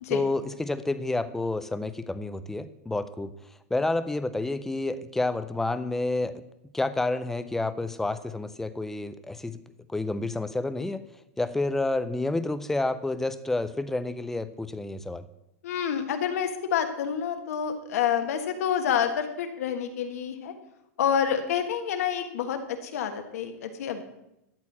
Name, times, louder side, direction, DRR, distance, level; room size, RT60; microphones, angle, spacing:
voice 1, 0.1-3.3 3.7-6.3 6.7-9.6 9.9-11.0 11.4-15.3, left 2 dB, 5° left, 12 dB, 0.4 m, -29 dB
voice 2, 15.6-20.5 21.0-24.0, left 8 dB, 65° left, 6 dB, 1.5 m, -28 dB
12.5 x 4.5 x 8.6 m, 0.86 s
supercardioid pair, 165°, 9 cm